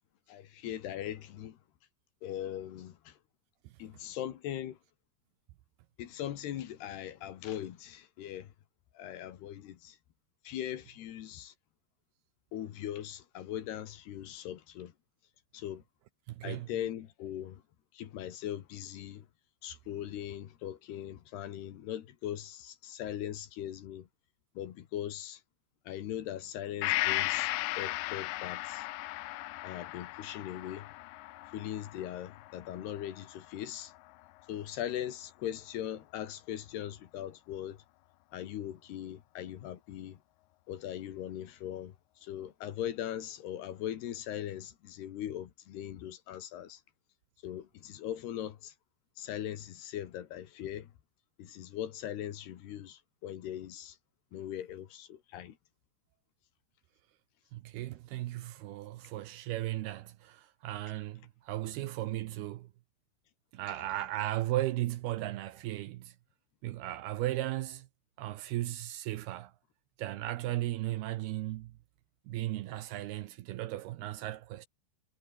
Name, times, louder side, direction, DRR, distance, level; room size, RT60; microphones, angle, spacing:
voice 1, 0.3-1.6 2.2-3.2 3.8-4.8 6.0-8.5 9.0-10.0 10.5-11.5 12.5-14.9 15.5-15.8 16.4-17.6 17.9-19.3 19.6-24.1 24.6-25.4 25.9-28.9 29.6-30.9 31.5-33.9 34.5-37.8 38.3-40.2 40.7-42.0 42.2-46.8 47.4-48.7 49.2-50.9 51.4-54.0 54.3-55.6 63.7-63.8, left 11 dB, 70° left, 3.6 m, -40 dB
voice 2, 16.3-16.8 57.5-62.7 63.5-66.2 66.6-67.9 68.2-69.5 70.0-71.7 72.3-74.7, right 15 dB, 75° right, 2.6 m, -36 dB
Gong, 26.8-34.5 34.8-34.9, left 19 dB, 90° left, 3.0 m, -36 dB
omnidirectional pair, 5.1 m